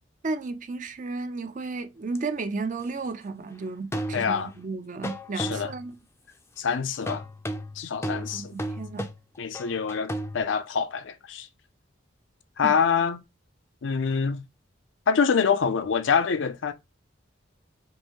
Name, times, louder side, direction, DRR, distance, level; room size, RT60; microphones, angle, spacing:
voice 1, 0.2-6.0 8.3-9.1 12.6-12.8, right 3 dB, 40° right, 0.5 m, -33 dB
sound 1, 2.2-2.3 3.9-4.6 5.0-6.0 7.1-10.4, equal, 15° left, 0.4 m, -34 dB
voice 2, 4.1-4.5 5.4-5.7 6.6-7.2 7.8-8.5 9.4-11.5 12.6-13.2 13.8-14.4 15.1-16.7, left 6 dB, 70° left, 0.5 m, -25 dB
5.3 x 2.6 x 2.9 m
head